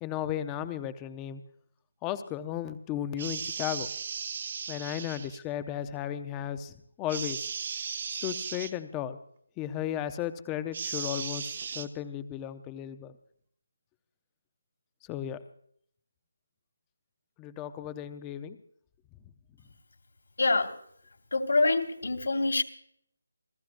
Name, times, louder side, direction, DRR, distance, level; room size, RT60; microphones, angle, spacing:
voice 1, 0.0-1.4 2.0-3.9 4.7-7.5 8.2-9.2 9.6-13.1 15.1-15.4 17.4-18.6, left 11 dB, 10° left, 12 dB, 0.6 m, -35 dB
sound 1, 3.2-5.4 7.1-8.7 10.7-11.9, right 6 dB, 30° right, 1.0 m, -36 dB
voice 2, 20.4-20.7 21.3-22.6, left 3 dB, 70° left, 4 dB, 2.7 m, -25 dB
28.0 x 15.5 x 2.5 m, 0.65 s
figure-of-eight pair, 175°, 0 cm